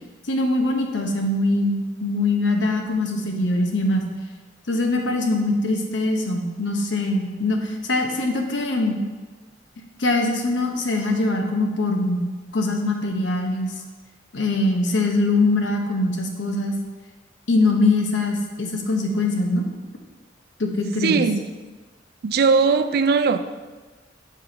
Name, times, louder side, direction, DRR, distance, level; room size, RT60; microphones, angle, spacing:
voice 1, 0.3-4.1 4.7-9.0 10.0-12.2 12.5-13.7 14.3-16.7 17.5-19.6 20.6-21.2, left 2 dB, 75° left, 3 dB, 0.9 m, -22 dB
voice 2, 21.0-21.4 22.2-23.4, right 5 dB, 55° right, 10 dB, 0.4 m, -19 dB
7.2 x 4.8 x 4.0 m, 1.3 s
head